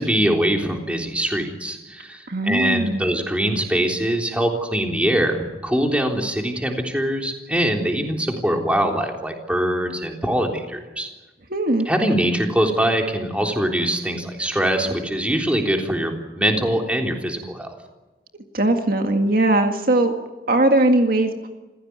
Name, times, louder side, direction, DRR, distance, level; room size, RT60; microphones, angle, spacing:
voice 1, 0.0-11.1 11.9-17.8, right 1 dB, 5° right, 2 dB, 3.6 m, -23 dB
voice 2, 2.3-3.0 11.5-11.9 18.5-20.1 20.5-21.5, right 1 dB, 55° right, 5 dB, 2.0 m, -19 dB
28.0 x 16.0 x 9.6 m, 1.1 s
head